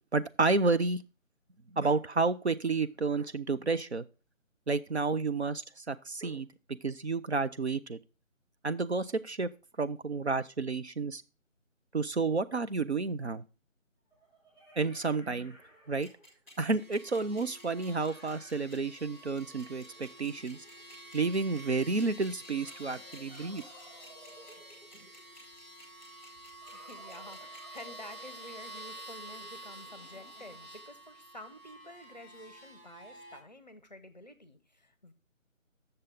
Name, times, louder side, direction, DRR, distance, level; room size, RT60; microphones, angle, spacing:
voice 1, 0.1-1.0 1.7-4.0 4.7-8.0 8.6-9.5 9.8-11.2 11.9-13.4 14.8-15.5 15.9-16.1 16.6-20.7 21.1-23.6, right 4 dB, 55° right, 11 dB, 0.5 m, -30 dB
sound 1, 12.7-12.8 14.1-16.5 17.7-21.2 22.4-25.4 26.6-30.9, equal, 30° right, 3.8 m, -57 dB
sound 2, 16.0-27.8, left 2 dB, ahead, 2.4 m, -56 dB
sound 3, 16.8-33.4, right 1 dB, 85° right, 2.9 m, -50 dB
voice 2, 26.7-35.1, left 1 dB, 35° left, 11 dB, 0.7 m, -50 dB
8.0 x 6.7 x 3.5 m, 0.32 s
figure-of-eight pair, 160°, 40 cm